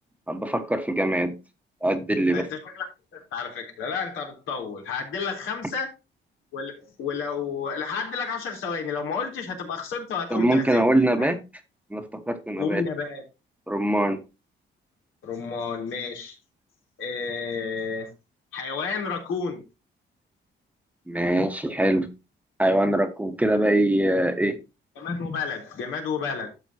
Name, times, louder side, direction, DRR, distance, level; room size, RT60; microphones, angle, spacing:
voice 1, 0.3-1.3 1.8-2.5 10.3-11.4 11.9-12.8 13.7-14.2 21.1-22.1 22.6-24.6, right 1 dB, 5° right, 7 dB, 1.3 m, -23 dB
voice 2, 2.3-2.9 3.1-5.9 6.5-11.3 12.6-13.2 15.2-16.4 17.0-18.1 18.5-19.6 25.0-26.5, left 5 dB, 80° left, 1 dB, 3.8 m, -31 dB
12.0 x 7.1 x 2.9 m, 0.26 s
cardioid pair, 90°, 20 cm